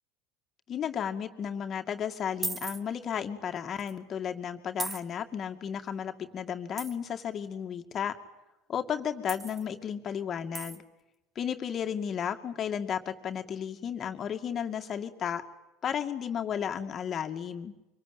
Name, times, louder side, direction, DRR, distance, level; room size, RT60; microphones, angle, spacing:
voice 1, 0.7-8.1 8.7-10.8 11.4-15.4 15.8-17.7, left 8 dB, 40° left, 6 dB, 2.3 m, -33 dB
sound 1, 2.4-2.8 3.8-3.9 4.8-5.0 6.8-7.0 9.3-9.7 10.5-10.8, right 4 dB, 25° right, 2.1 m, -36 dB
25.5 x 24.5 x 9.2 m, 0.98 s
hypercardioid pair, 75°, 0 cm